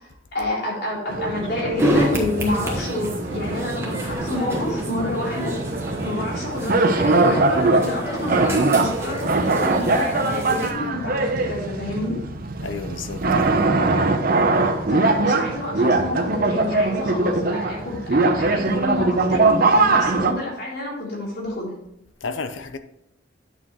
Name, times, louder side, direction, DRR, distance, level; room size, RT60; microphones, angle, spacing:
voice 1, 0.0-5.6 6.0-12.2 14.9-21.7, left 1 dB, 60° left, 3.4 m, -29 dB
sound 1, 1.1-20.3, right 3 dB, 50° right, 0.8 m, -22 dB
sound 2, 1.8-10.7, equal, 15° right, 1.5 m, -28 dB
voice 2, 12.6-13.7 22.2-22.8, left 4 dB, 85° left, 0.8 m, -32 dB
9.8 x 6.6 x 3.1 m
head